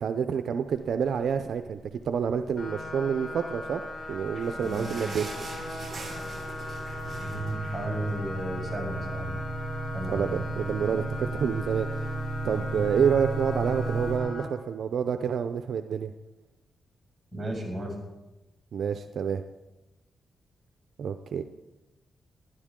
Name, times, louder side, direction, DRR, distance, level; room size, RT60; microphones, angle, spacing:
voice 1, 0.0-1.8 2.0-3.8 4.1-5.3 10.1-12.1 12.4-16.1 18.7-19.4 21.0-21.4, right 7 dB, 70° right, 8 dB, 0.6 m, -28 dB
sound 1, 2.6-14.5, left 2 dB, 50° left, 3.9 m, -39 dB
sound 2, 3.5-14.2, right 2 dB, 85° left, 3.5 m, -36 dB
sound 3, 3.9-8.6 9.0-9.1 9.4-9.6 10.2-10.3, right 3 dB, 45° right, 6.2 m, -43 dB
voice 2, 7.2-9.4 9.9-10.3 12.7-12.9 17.3-17.9, right 1 dB, 20° right, -3 dB, 6.8 m, -34 dB
20.0 x 12.5 x 3.7 m, 1.0 s
cardioid pair, 90°, 0 cm